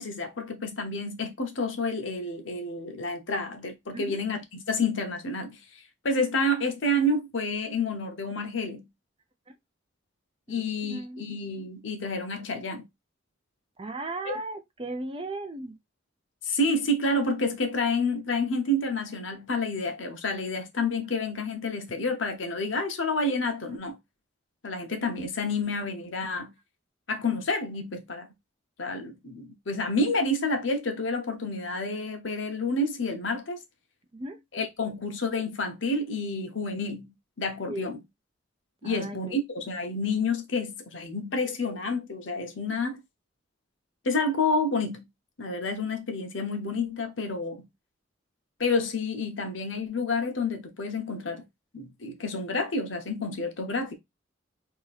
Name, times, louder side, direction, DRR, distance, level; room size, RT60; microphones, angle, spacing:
voice 1, 0.0-5.6 6.0-8.8 10.5-12.9 14.2-14.3 16.4-24.0 24.6-26.5 27.1-28.3 28.8-33.6 34.5-37.1 37.4-38.0 38.8-43.0 44.0-45.0 45.4-47.7 48.6-51.4 51.7-53.9, left 2 dB, 80° left, 0.9 m, -29 dB
voice 2, 10.5-11.3 13.8-15.8 34.1-34.4 37.7-38.0 38.8-39.4, right 2 dB, 30° right, 0.6 m, -37 dB
3.0 x 2.6 x 3.9 m
head